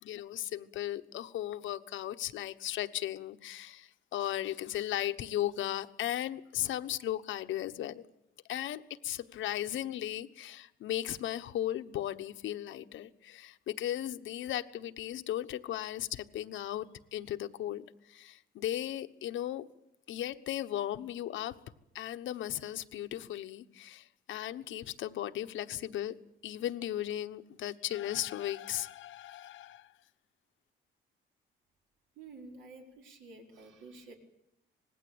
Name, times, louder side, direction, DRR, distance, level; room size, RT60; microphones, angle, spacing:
voice 1, 0.0-8.0 8.5-19.7 20.1-21.6 21.9-26.2 26.4-29.9, left 12 dB, 75° left, 11 dB, 1.2 m, -36 dB
voice 2, 32.1-34.1, right 3 dB, 70° right, 1 dB, 5.0 m, -50 dB
25.5 x 20.0 x 8.8 m, 0.82 s
cardioid pair, 175°, 20 cm